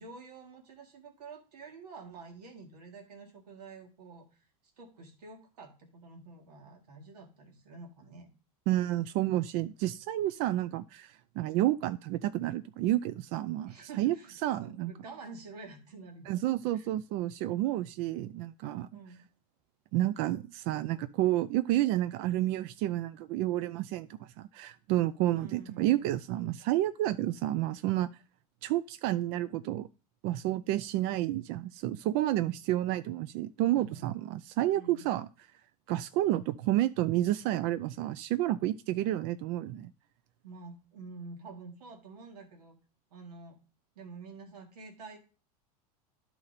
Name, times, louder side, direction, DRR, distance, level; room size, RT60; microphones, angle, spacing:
voice 1, 0.0-4.5 4.8-8.3 13.7-16.5 16.7-16.9 18.9-19.2 25.3-26.1 33.7-34.1 34.7-35.1 40.4-42.8 43.1-43.6 44.0-45.2, right 4 dB, 90° right, 2 dB, 1.9 m, -48 dB
voice 2, 8.7-14.2 14.4-14.9 16.3-18.9 19.9-28.1 28.6-29.9 30.2-35.3 35.9-39.9, right 14 dB, 55° right, 12 dB, 0.4 m, -30 dB
11.5 x 4.3 x 4.0 m, 0.36 s
supercardioid pair, 110°, 20 cm